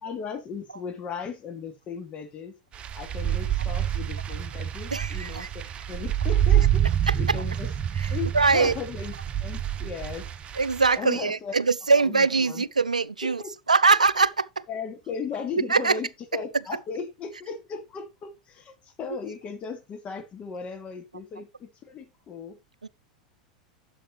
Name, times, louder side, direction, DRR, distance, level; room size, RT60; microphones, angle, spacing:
voice 1, 0.0-2.5 2.9-6.9 7.1-7.7 8.1-9.1 9.4-10.3 10.9-11.5 12.0-12.6 13.2-13.5 14.7-22.6, left 6 dB, 35° left, 2.5 m, -36 dB
sound 1, 2.7-11.0, right 10 dB, 30° right, 0.9 m, -27 dB
voice 2, 4.9-5.5 8.3-8.7 10.6-13.4 13.7-14.5 15.7-16.0 22.8-22.9, right 4 dB, 90° right, 0.4 m, -22 dB
11.5 x 7.4 x 3.2 m
figure-of-eight pair, 90°, 4 cm